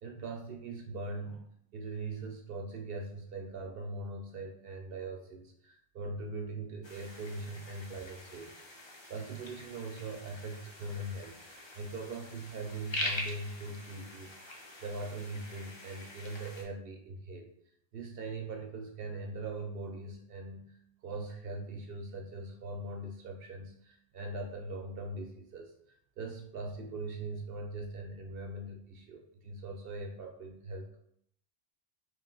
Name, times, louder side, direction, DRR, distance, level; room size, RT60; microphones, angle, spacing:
voice 1, 0.0-8.5 9.1-11.4 11.7-14.3 14.8-17.5 17.9-31.0, right 2 dB, 70° right, 3 dB, 0.8 m, -41 dB
sound 1, 6.8-16.6, left 1 dB, 35° left, 0.6 m, -43 dB
3.2 x 3.0 x 3.7 m, 0.69 s
omnidirectional pair, 1.0 m